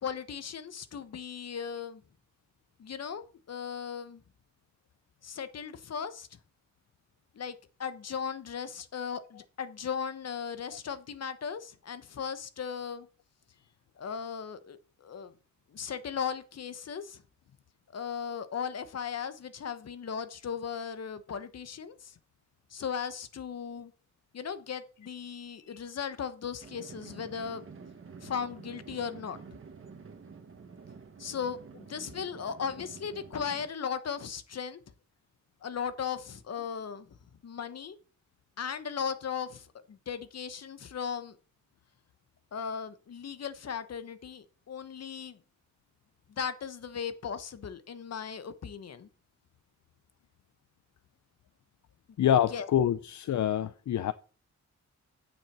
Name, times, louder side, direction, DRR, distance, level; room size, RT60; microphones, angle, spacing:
voice 1, 0.0-2.0 2.8-4.2 5.2-6.3 7.3-13.1 14.0-15.3 15.7-17.2 17.9-22.2 22.7-23.9 24.3-27.6 28.2-29.4 31.2-34.8 35.6-37.2 37.4-38.0 38.6-41.4 42.5-45.4 46.3-49.1 52.5-52.7, left 7 dB, 60° left, 1.1 m, -37 dB
sound 1, 26.6-33.7, right 5 dB, 45° right, 1.6 m, -49 dB
voice 2, 52.2-54.1, left 10 dB, 75° left, 0.6 m, -26 dB
9.2 x 7.7 x 6.0 m
wide cardioid pair, 140°, 29 cm